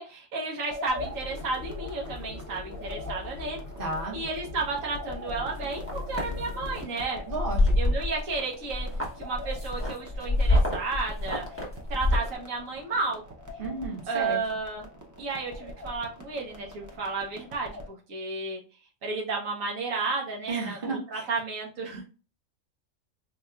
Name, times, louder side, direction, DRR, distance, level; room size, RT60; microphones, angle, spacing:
voice 1, 0.0-3.6 4.1-7.2 7.8-8.9 9.2-11.4 11.9-13.2 14.1-14.9 15.2-18.6 19.0-22.1, right 3 dB, 80° right, -1 dB, 1.3 m, -32 dB
sound 1, 0.7-17.9, left 1 dB, 25° right, 0.4 m, -44 dB
sound 2, 1.0-6.8, left 2 dB, 45° left, 0.6 m, -40 dB
voice 2, 3.8-4.2 7.3-8.0 13.6-14.4 20.5-21.3, right 2 dB, 45° right, -2 dB, 1.2 m, -33 dB
sound 3, 5.5-6.3 6.8-7.0 7.3-8.4 8.7-12.4, left 1 dB, 10° left, 1.0 m, -26 dB
4.0 x 2.9 x 2.3 m, 0.35 s
omnidirectional pair, 1.4 m